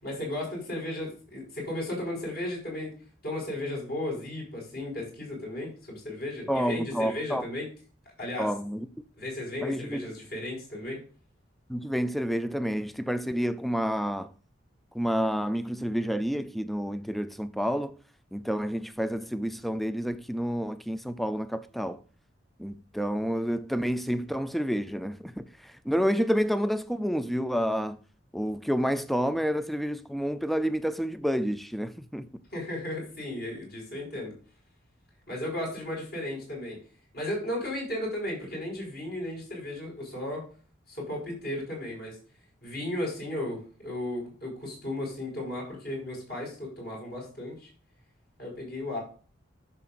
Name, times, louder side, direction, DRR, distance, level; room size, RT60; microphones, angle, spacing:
voice 1, 0.0-2.9 3.2-7.7 8.2-8.5 9.2-11.0 32.5-34.3 35.3-36.8 37.1-40.4 40.9-42.2 42.6-47.7 48.4-49.0, left 1 dB, 50° left, 4.8 m, -35 dB
voice 2, 6.5-7.5 8.4-8.9 9.6-10.1 11.7-14.3 14.9-17.9 18.3-22.0 22.6-28.0 28.3-32.3, equal, ahead, 0.4 m, -29 dB
11.0 x 6.8 x 2.5 m
head